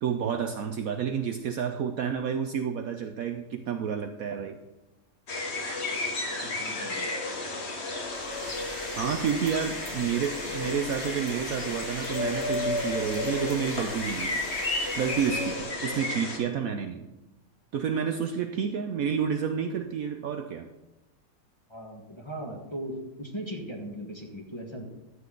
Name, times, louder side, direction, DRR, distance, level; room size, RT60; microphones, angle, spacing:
voice 1, 0.0-4.6 9.0-14.4 15.0-17.1 17.7-20.7, right 7 dB, 65° right, 6 dB, 1.0 m, -30 dB
sound 1, 5.3-16.4, left 2 dB, 40° left, 1.6 m, -32 dB
voice 2, 6.2-7.2 10.4-10.6 21.7-24.9, right 1 dB, 15° left, 0 dB, 1.3 m, -39 dB
sound 2, 8.0-15.8, left 1 dB, 65° left, 5.2 m, -41 dB
sound 3, 8.2-8.3 8.5-8.6 8.9-11.4 11.8-13.9, left 4 dB, 80° left, 2.6 m, -49 dB
12.5 x 8.0 x 3.9 m, 0.98 s
omnidirectional pair, 1.9 m